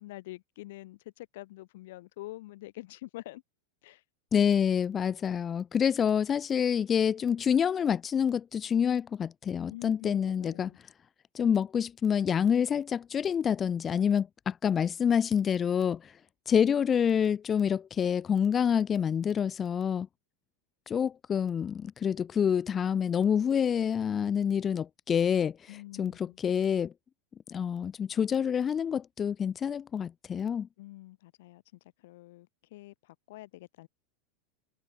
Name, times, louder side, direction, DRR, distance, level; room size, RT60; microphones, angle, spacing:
voice 1, 0.0-3.4 3.8-4.0 9.7-10.8 25.7-26.4 30.8-31.6 32.0-33.9, left 18 dB, 70° left, 3.3 m, -46 dB
voice 2, 4.3-10.7 11.3-16.1 16.5-20.1 20.9-26.9 27.5-30.7, left 8 dB, 25° left, 0.7 m, -27 dB
supercardioid pair, 140°, 0 cm